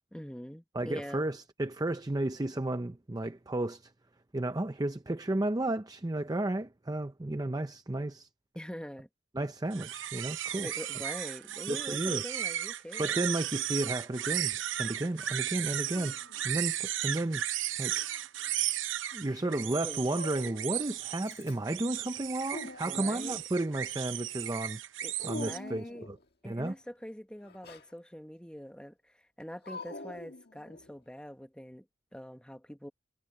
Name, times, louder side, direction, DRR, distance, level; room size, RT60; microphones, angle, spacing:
voice 1, 0.1-1.3 8.5-9.1 10.6-13.3 19.2-20.0 22.8-23.4 25.0-26.1 26.4-31.8 32.1-32.9, equal, 5° left, 1.4 m, -44 dB
voice 2, 0.7-3.9 4.3-8.3 9.3-10.7 11.7-12.2 13.0-16.2 16.4-17.4 17.8-18.1 19.1-24.8 25.2-26.2 26.4-26.7, right 1 dB, 20° right, 0.6 m, -33 dB
sound 1, 9.7-25.6, right 12 dB, 90° right, 0.8 m, -35 dB
Dog, 15.9-16.7 17.8-18.7 20.1-20.9 21.3-21.8 22.1-23.5 25.2-26.3 27.4-27.9 29.6-31.0, left 2 dB, 55° left, 1.8 m, -46 dB
head